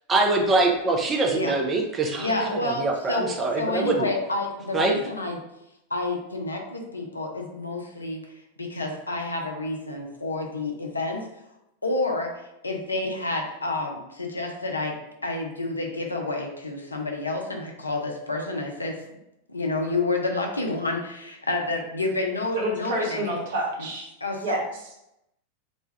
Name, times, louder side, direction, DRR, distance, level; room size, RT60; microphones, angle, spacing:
voice 1, 0.1-4.1 4.7-4.9, right 2 dB, 20° right, 1 dB, 0.5 m, -24 dB
voice 2, 2.2-5.4 5.9-8.2 8.6-11.3 11.8-12.3 12.6-14.9 15.2-19.0 19.5-23.3 24.2-24.6, left 2 dB, 80° left, 2 dB, 0.5 m, -29 dB
voice 3, 22.5-24.1 24.4-24.6, right 1 dB, 55° right, -2 dB, 0.9 m, -28 dB
2.5 x 2.2 x 3.2 m, 0.85 s
figure-of-eight pair, 90°, 0 cm